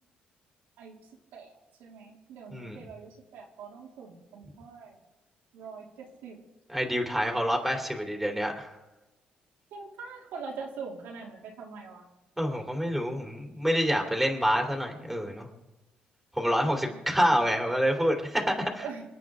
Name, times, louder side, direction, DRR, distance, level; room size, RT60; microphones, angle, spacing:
voice 1, 1.3-5.0 5.5-6.4 9.7-12.0 16.9-17.0 18.8-19.0, right 5 dB, 85° right, -2 dB, 2.8 m, -43 dB
voice 2, 6.7-8.7 12.4-15.5 16.4-18.8, equal, 5° right, 1 dB, 3.1 m, -27 dB
28.0 x 9.4 x 3.7 m, 1.0 s
cardioid pair, 100°, 3 cm